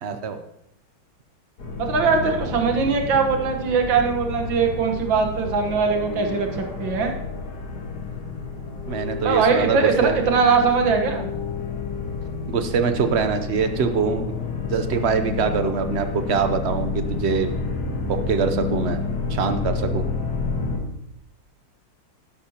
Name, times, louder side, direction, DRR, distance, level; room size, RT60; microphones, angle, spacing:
voice 1, 0.0-0.4 8.9-10.2 12.5-14.3 14.7-17.5 18.1-19.0 19.3-20.0, right 6 dB, 60° right, 8 dB, 0.7 m, -24 dB
sound 1, 1.6-20.8, left 4 dB, 60° left, 2.1 m, -30 dB
voice 2, 1.8-7.1 9.2-11.3, right 5 dB, 85° right, 4 dB, 2.0 m, -21 dB
12.0 x 11.5 x 2.9 m, 0.81 s
omnidirectional pair, 2.0 m